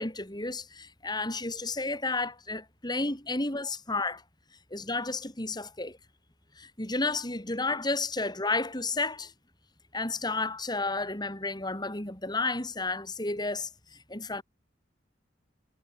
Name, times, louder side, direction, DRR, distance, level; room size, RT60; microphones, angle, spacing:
voice 1, 0.0-4.2 4.7-6.0 6.6-9.3 9.9-13.7 14.1-14.4, left 3 dB, 25° left, 4.6 m, -32 dB
head